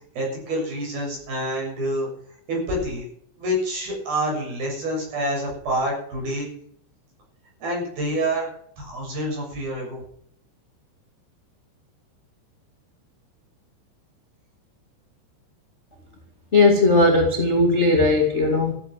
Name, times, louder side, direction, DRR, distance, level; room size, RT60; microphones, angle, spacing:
voice 1, 0.1-2.1 2.5-3.1 3.4-6.5 7.6-8.5 8.8-10.0, right 1 dB, 50° right, -1 dB, 8.5 m, -27 dB
voice 2, 16.5-18.7, left 2 dB, 30° left, 1 dB, 1.3 m, -18 dB
15.0 x 9.2 x 7.7 m, 0.63 s
omnidirectional pair, 5.5 m